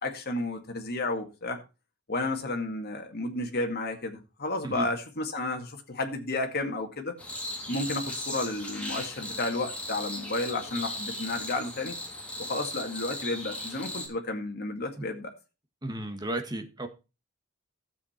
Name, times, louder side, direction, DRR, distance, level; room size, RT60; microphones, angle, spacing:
voice 1, 0.0-1.6 2.1-7.2 7.7-12.0 12.4-15.3, left 2 dB, 50° left, 2.0 m, -32 dB
sound 1, 7.2-14.1, left 1 dB, 5° left, 3.6 m, -37 dB
voice 2, 15.8-16.9, right 1 dB, 20° right, 1.5 m, -34 dB
12.5 x 7.8 x 4.4 m
head